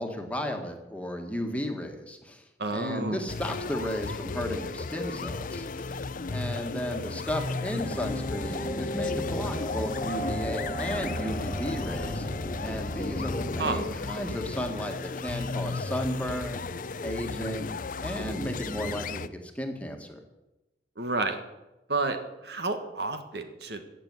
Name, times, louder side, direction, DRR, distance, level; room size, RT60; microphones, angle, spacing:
voice 1, 0.0-2.4 2.7-5.9 6.3-12.3 12.6-16.6 17.0-17.7 18.0-20.2, equal, 10° left, 3 dB, 1.7 m, -34 dB
voice 2, 2.6-3.2 13.6-13.8 21.0-21.4 21.9-22.2 22.4-23.8, right 3 dB, 65° right, 7 dB, 1.6 m, -30 dB
sound 1, 3.3-19.3, left 4 dB, 50° left, 0.6 m, -35 dB
sound 2, 7.8-13.8, equal, 25° left, 1.4 m, -34 dB
16.0 x 6.9 x 9.6 m, 1.0 s
head